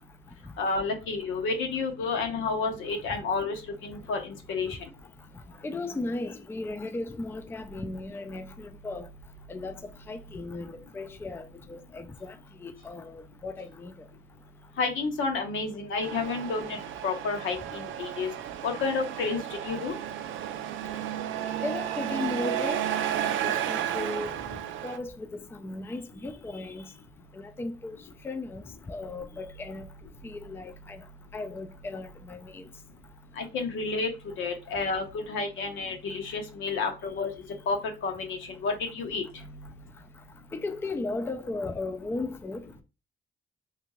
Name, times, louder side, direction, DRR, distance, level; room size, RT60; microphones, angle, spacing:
voice 1, 0.6-4.8 14.8-16.8 17.0-18.3 18.6-19.9 33.4-34.1 34.4-37.3 37.7-37.8 38.0-39.4, left 4 dB, 80° left, 0.9 m, -30 dB
voice 2, 5.6-9.1 9.5-9.8 10.1-12.4 12.6-13.9 21.6-22.8 23.2-24.4 24.8-25.3 25.5-26.9 27.3-28.0 28.2-29.9 30.2-31.0 31.3-32.7 40.5-42.8, left 2 dB, 10° left, 0.4 m, -36 dB
Truck, 16.0-25.0, right 11 dB, 80° right, 0.4 m, -33 dB
2.6 x 2.5 x 3.0 m
cardioid pair, 90°, 20 cm